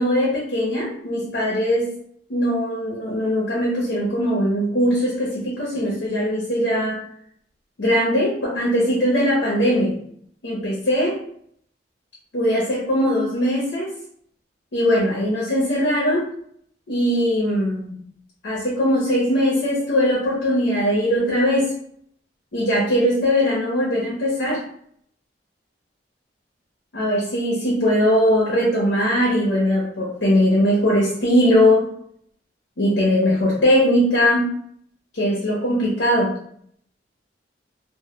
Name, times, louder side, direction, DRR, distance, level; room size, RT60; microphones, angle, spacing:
voice 1, 0.0-1.9 2.3-7.0 7.8-10.0 10.4-11.2 12.3-13.9 14.7-16.3 16.9-17.9 18.4-21.7 22.5-24.6 26.9-31.9 32.8-34.6 35.1-36.3, equal, 80° left, -3 dB, 0.6 m, -20 dB
2.1 x 2.1 x 2.9 m, 0.66 s
head